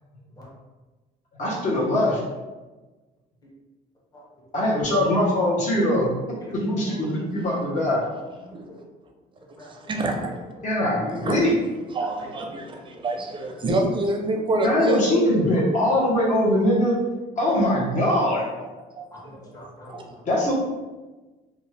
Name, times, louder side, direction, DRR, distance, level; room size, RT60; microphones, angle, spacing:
voice 1, 1.4-2.2 4.5-6.1 6.6-8.0 10.6-11.5 14.6-16.9 17.4-18.5 20.3-20.5, left 1 dB, 45° left, -5 dB, 1.1 m, -22 dB
voice 2, 6.4-7.0 8.4-8.8 9.6-10.0 10.3-10.7 12.0-12.3 19.1-20.2, equal, 20° left, -4 dB, 1.0 m, -44 dB
voice 3, 9.9-10.3 11.2-11.4 11.9-15.0 17.9-18.1 19.0-19.1 19.9-20.0, right 2 dB, 30° right, 2 dB, 0.5 m, -26 dB
2.7 x 2.3 x 3.2 m, 1.2 s
cardioid pair, 110°, 17 cm